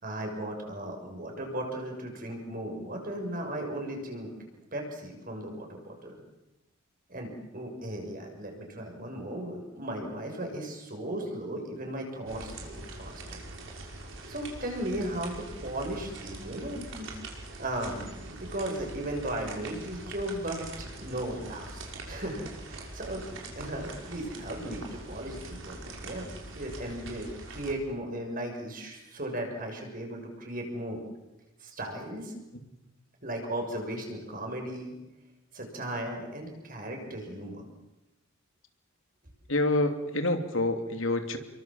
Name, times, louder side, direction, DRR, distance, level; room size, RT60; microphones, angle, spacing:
voice 1, 0.0-4.3 4.7-6.1 7.1-13.4 14.3-17.1 17.6-31.0 31.6-32.3 33.2-34.9 35.5-37.6, right 1 dB, 40° right, 3 dB, 6.8 m, -36 dB
sound 1, 12.3-27.7, right 2 dB, 65° right, 5.7 m, -43 dB
voice 2, 39.5-41.4, left 2 dB, 70° left, 6 dB, 2.9 m, -27 dB
30.0 x 23.5 x 7.7 m, 1.0 s
head